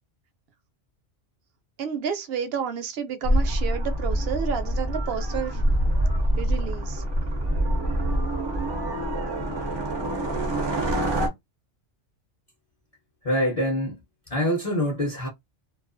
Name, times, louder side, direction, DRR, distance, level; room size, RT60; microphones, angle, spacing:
voice 1, 1.8-5.6 6.4-7.0, right 7 dB, 65° right, 0.7 m, -30 dB
sound 1, 3.2-11.3, right 1 dB, 40° right, 0.3 m, -25 dB
voice 2, 13.2-14.0 14.3-15.3, equal, 40° left, 0.7 m, -25 dB
2.3 x 2.2 x 2.4 m
omnidirectional pair, 1.2 m